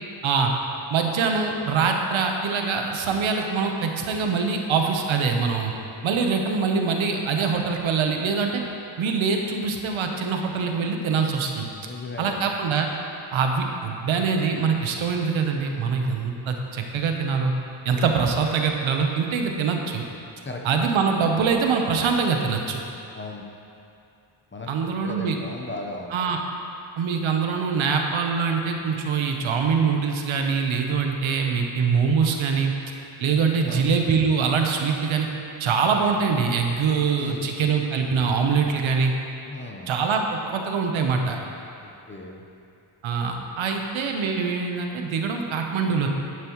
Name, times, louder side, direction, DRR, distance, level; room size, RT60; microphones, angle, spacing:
voice 1, 0.9-5.7 6.0-8.6 9.0-11.7 12.2-12.9 13.3-17.5 17.8-20.0 20.6-22.8 24.7-25.4 26.1-26.4 27.0-32.7 33.2-35.3 35.6-39.1 39.9-41.4 43.0-46.1, right 5 dB, 80° right, 3 dB, 1.1 m, -24 dB
voice 2, 11.8-12.5 20.4-20.6 23.1-23.4 24.5-26.4 33.4-33.9 36.9-37.6 39.5-39.9 41.8-42.4, left 2 dB, 25° left, 2 dB, 1.0 m, -37 dB
10.5 x 9.3 x 3.1 m, 2.6 s
cardioid pair, 85°, 47 cm